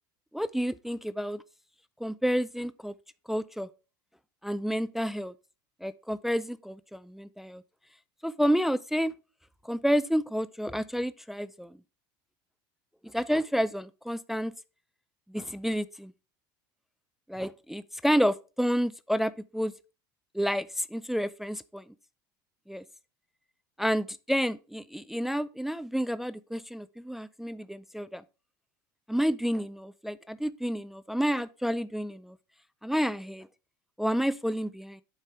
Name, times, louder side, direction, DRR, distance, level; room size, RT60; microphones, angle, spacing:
voice 1, 0.3-1.4 2.0-2.9 3.3-3.7 4.4-5.3 5.8-7.6 8.2-9.1 9.6-11.8 13.1-14.5 15.3-16.1 17.3-19.7 20.3-21.8 22.7-22.8 23.8-28.2 29.1-32.4 32.8-33.5 34.0-35.0, equal, ahead, 0.3 m, -30 dB
8.3 x 5.3 x 4.3 m
supercardioid pair, 110°, 12 cm